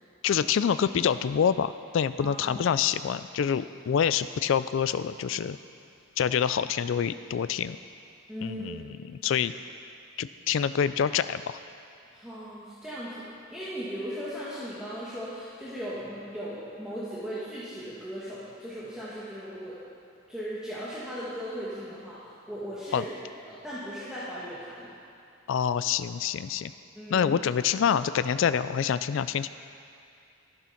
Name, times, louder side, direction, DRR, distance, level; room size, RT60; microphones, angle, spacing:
voice 1, 0.2-5.6 6.2-7.8 8.4-9.5 10.2-11.6 22.9-23.0 25.5-26.7 27.1-29.5, left 8 dB, 60° left, 13 dB, 0.3 m, -26 dB
voice 2, 2.2-2.7 8.3-8.9 12.1-19.8 20.3-22.2 22.5-23.1 23.5-24.9 27.0-27.3, equal, 5° right, -11 dB, 1.7 m, -37 dB
12.0 x 11.0 x 5.8 m, 2.5 s
head